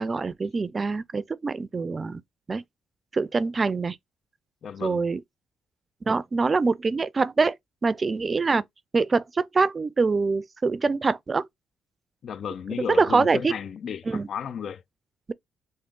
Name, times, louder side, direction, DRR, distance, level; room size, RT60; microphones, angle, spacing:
voice 1, 0.0-2.2 2.5-2.6 3.1-4.0 4.8-5.2 6.1-7.6 7.8-8.6 8.9-11.5 12.8-13.5 14.1-14.3, right 4 dB, 30° right, 0.4 m, -24 dB
voice 2, 4.6-5.0 12.2-14.8, left 7 dB, 60° left, 0.3 m, -34 dB
3.6 x 2.5 x 3.7 m
cardioid pair, 90°, 0 cm